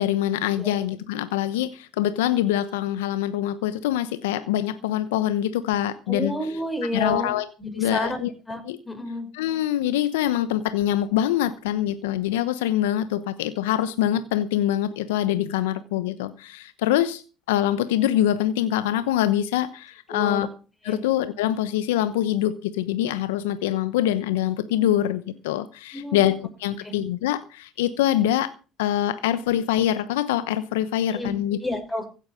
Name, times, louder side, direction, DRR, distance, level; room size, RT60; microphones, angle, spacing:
voice 1, 0.0-6.3 6.9-7.4 7.7-8.3 8.6-8.8 9.3-20.5 20.8-28.5 28.8-31.6, left 12 dB, 85° left, 13 dB, 1.0 m, -24 dB
voice 2, 6.1-7.3 7.6-9.3 20.1-20.5 20.9-21.0 25.9-26.2 26.8-26.9 31.1-31.3 31.6-32.1, left 1 dB, 10° left, 6 dB, 6.3 m, -30 dB
16.0 x 8.8 x 6.9 m, 0.36 s
hypercardioid pair, 75°, 0 cm